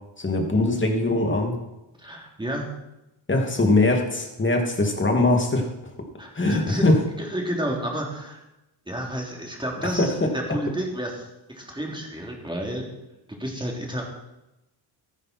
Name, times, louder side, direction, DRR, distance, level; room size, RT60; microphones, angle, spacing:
voice 1, 0.2-1.5 3.3-5.7 6.3-7.0, left 2 dB, 25° left, 2 dB, 2.8 m, -21 dB
voice 2, 2.0-2.7 6.2-6.8 7.2-8.4 8.9-12.9 13.3-14.0, right 1 dB, 10° right, -1 dB, 3.4 m, -31 dB
14.0 x 11.0 x 4.6 m, 0.95 s
cardioid pair, 100°, 49 cm